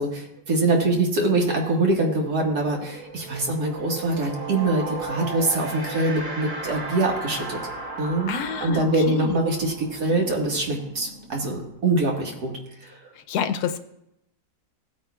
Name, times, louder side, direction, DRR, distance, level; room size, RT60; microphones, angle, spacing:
voice 1, 0.0-7.6 8.0-12.5, right 2 dB, 85° right, 0 dB, 2.2 m, -24 dB
sound 1, 2.0-12.5, right 2 dB, 55° right, 2.7 m, -36 dB
voice 2, 8.3-9.4 13.3-13.8, left 7 dB, 90° left, 9 dB, 1.2 m, -28 dB
16.5 x 8.9 x 2.3 m, 0.82 s
omnidirectional pair, 1.6 m